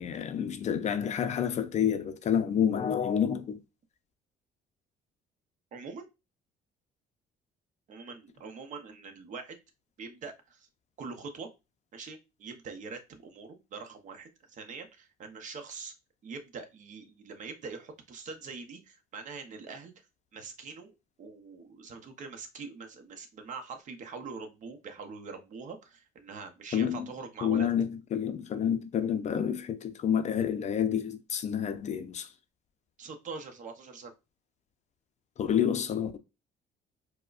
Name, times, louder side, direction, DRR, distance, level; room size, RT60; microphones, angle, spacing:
voice 1, 0.0-3.6 26.7-27.1 27.4-32.3 35.4-36.2, left 8 dB, 45° left, 0.4 m, -29 dB
voice 2, 5.7-6.0 7.9-9.6 10.0-10.7 11.0-11.5 11.9-15.9 16.2-19.9 20.3-27.7 33.0-34.1, right 4 dB, 50° right, 0.7 m, -43 dB
4.6 x 2.1 x 2.4 m
cardioid pair, 110°, 17 cm